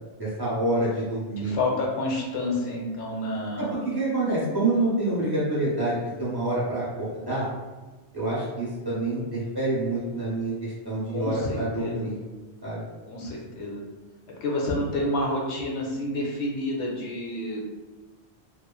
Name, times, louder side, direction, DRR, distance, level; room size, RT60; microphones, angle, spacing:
voice 1, 0.2-1.5 3.6-7.5 8.1-12.1 12.6-12.8, right 2 dB, 25° right, -9 dB, 0.9 m, -27 dB
voice 2, 1.4-3.8 11.1-12.1 13.1-13.8 14.4-17.6, left 1 dB, 80° left, -2 dB, 0.9 m, -29 dB
3.0 x 2.1 x 2.3 m, 1.2 s
omnidirectional pair, 1.1 m